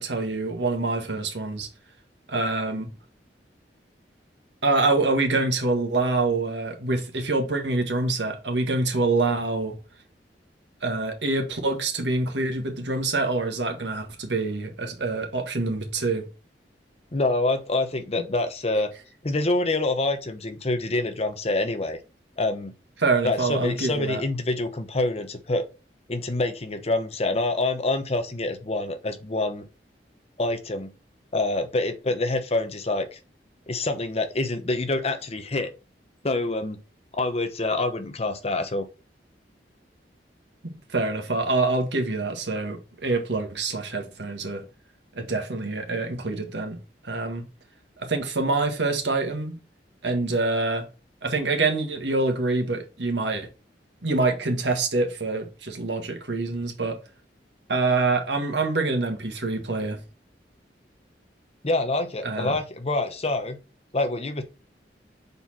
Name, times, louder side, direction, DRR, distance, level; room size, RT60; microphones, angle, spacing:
voice 1, 0.0-1.7 2.3-2.9 4.6-9.7 10.8-16.3 23.0-24.2 40.6-44.6 45.1-46.8 47.0-47.4 48.0-49.5 50.0-50.8 51.2-53.5 54.0-57.0 57.7-60.0 62.2-62.5, right 3 dB, 85° right, 1.6 m, -26 dB
voice 2, 17.1-18.9 19.2-22.0 22.4-22.7 23.2-25.6 26.1-29.7 30.4-30.9 31.3-33.2 33.7-35.7 36.2-36.8 37.1-38.8 61.6-63.6 63.9-64.4, left 2 dB, 35° left, 0.9 m, -26 dB
6.8 x 4.3 x 4.3 m
head